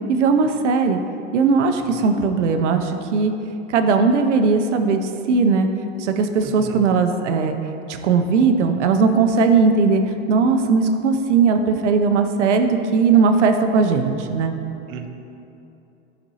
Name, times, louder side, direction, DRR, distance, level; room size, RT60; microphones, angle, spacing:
voice 1, 0.1-1.0 1.3-3.3 3.7-5.7 6.0-7.5 7.9-10.0 10.3-14.6, right 4 dB, 90° right, 6 dB, 0.6 m, -18 dB
voice 2, 6.4-6.8 14.9-15.1, right 8 dB, 35° right, 5 dB, 0.5 m, -34 dB
9.0 x 5.1 x 2.8 m, 2.8 s
hypercardioid pair, 110°, 35 cm